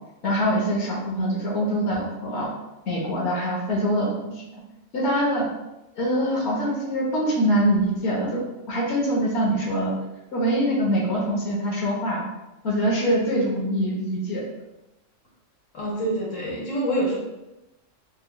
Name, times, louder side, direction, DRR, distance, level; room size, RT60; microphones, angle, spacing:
voice 1, 0.2-2.5 2.9-4.1 4.5-4.6 4.9-5.5 6.0-8.4 8.7-9.9 10.3-12.2 12.6-14.4, equal, 55° left, -4 dB, 1.4 m, -24 dB
voice 2, 15.7-17.2, right 1 dB, 75° left, -4 dB, 1.4 m, -26 dB
5.4 x 3.1 x 2.3 m, 0.96 s
omnidirectional pair, 1.4 m